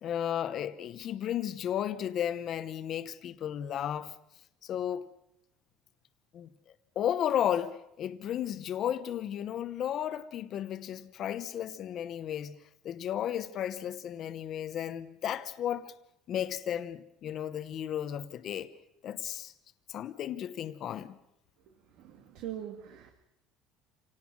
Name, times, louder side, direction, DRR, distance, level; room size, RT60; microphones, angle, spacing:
voice 1, 0.0-4.1 4.6-5.0 6.3-6.5 6.9-12.5 12.8-15.9 16.3-18.7 19.0-19.5 19.9-21.2, left 10 dB, 40° left, 0.9 m, -34 dB
voice 2, 22.0-23.1, right 11 dB, 65° right, 2.1 m, -42 dB
27.0 x 18.0 x 6.2 m
cardioid pair, 160°, 0 cm